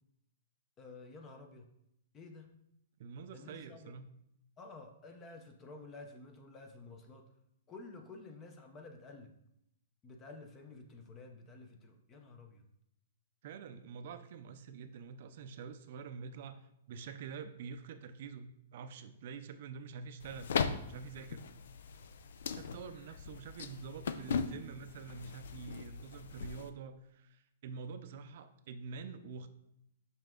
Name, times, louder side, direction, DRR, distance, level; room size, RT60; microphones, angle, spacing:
voice 1, 0.8-1.7 2.1-2.6 3.3-4.0 4.6-7.3 7.7-9.3 10.0-12.6, left 3 dB, 15° left, 5 dB, 0.6 m, -51 dB
voice 2, 3.0-4.1 13.4-20.5 20.8-21.4 22.5-29.5, right 5 dB, 45° right, 9 dB, 0.5 m, -47 dB
sound 1, 20.2-26.7, left 6 dB, 70° left, 0.5 m, -39 dB
5.9 x 5.5 x 3.7 m, 0.79 s
hypercardioid pair, 170°, 0 cm